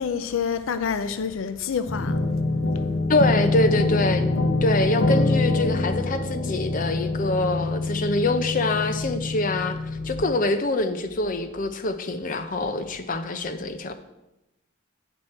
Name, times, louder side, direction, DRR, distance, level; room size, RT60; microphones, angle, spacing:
voice 1, 0.0-2.2, left 6 dB, 85° left, 0.5 m, -27 dB
sound 1, 1.9-10.4, left 2 dB, 70° left, 0.9 m, -25 dB
voice 2, 3.1-13.9, left 2 dB, 45° left, 0.6 m, -25 dB
8.9 x 6.2 x 4.3 m
head